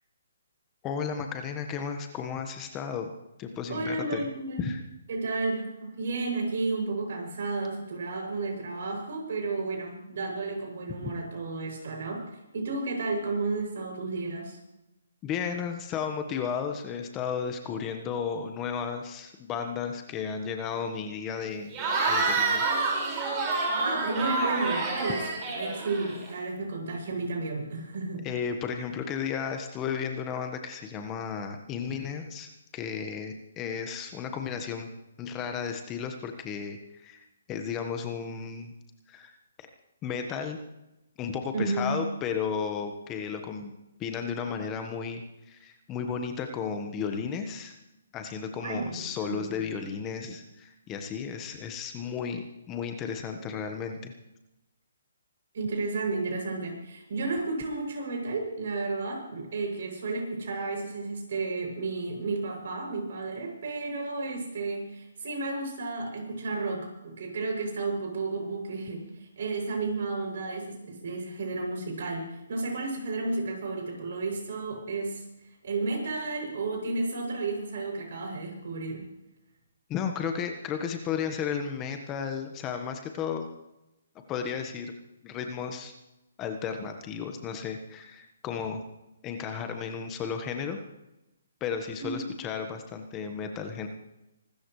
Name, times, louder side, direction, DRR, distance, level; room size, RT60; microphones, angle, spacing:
voice 1, 0.8-3.1 3.4-4.2 4.6-4.8 11.0-11.1 15.2-21.7 22.1-22.6 28.2-34.9 35.2-37.2 37.5-38.7 39.1-39.7 40.0-40.6 41.2-43.7 44.0-47.8 48.1-54.1 79.9-83.5 84.3-84.9 85.2-85.9 86.4-88.8 89.2-90.8 91.6-93.9, left 6 dB, 20° left, 5 dB, 1.3 m, -34 dB
voice 2, 3.7-4.6 5.1-12.2 12.5-14.6 23.8-28.2 41.5-41.9 48.6-49.6 55.5-75.2 75.6-79.0 92.0-92.2, right 3 dB, 60° right, 0 dB, 7.3 m, -32 dB
Cheering / Crowd, 21.7-26.3, right 3 dB, 25° right, 5.5 m, -28 dB
25.5 x 13.5 x 3.3 m, 0.93 s
hypercardioid pair, 155°, 0 cm